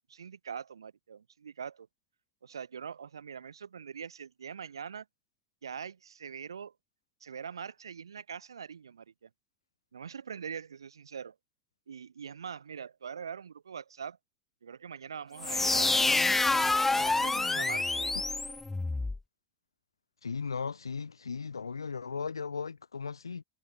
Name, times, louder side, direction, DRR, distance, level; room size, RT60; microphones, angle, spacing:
voice 1, 0.1-1.9 2.4-5.1 5.6-6.7 7.2-9.3 9.9-11.3 11.9-14.2 14.6-18.1, right 7 dB, 80° right, 3.1 m, -43 dB
sound 1, 15.4-19.2, left 3 dB, 10° left, 0.4 m, -27 dB
voice 2, 20.2-23.4, left 5 dB, 85° left, 0.6 m, -36 dB
figure-of-eight pair, 70°, 2 cm